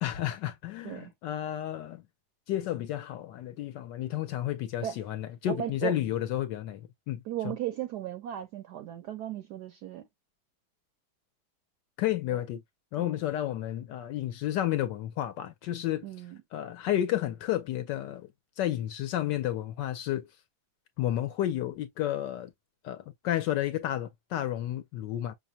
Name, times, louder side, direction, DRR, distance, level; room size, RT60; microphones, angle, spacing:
voice 1, 0.0-2.0 2.5-7.5 12.0-12.6 12.9-16.1 16.5-18.3 18.6-20.3 21.0-22.5 22.8-25.3, left 12 dB, 70° left, 1.1 m, -31 dB
voice 2, 5.5-5.9 7.3-10.1 12.3-12.4 13.0-13.1 16.0-16.4, right 12 dB, 70° right, 1.0 m, -36 dB
5.9 x 2.0 x 2.6 m
omnidirectional pair, 2.2 m